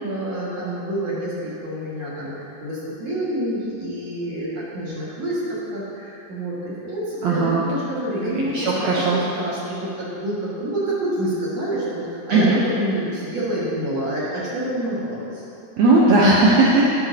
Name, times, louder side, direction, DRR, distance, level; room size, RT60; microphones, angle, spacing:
voice 1, 0.0-15.4, right 1 dB, 50° right, -9 dB, 2.6 m, -27 dB
voice 2, 7.2-7.6 8.3-9.2 12.3-12.6 15.8-16.9, right 2 dB, 85° right, -5 dB, 1.5 m, -17 dB
14.0 x 6.5 x 2.8 m, 2.6 s
omnidirectional pair, 4.2 m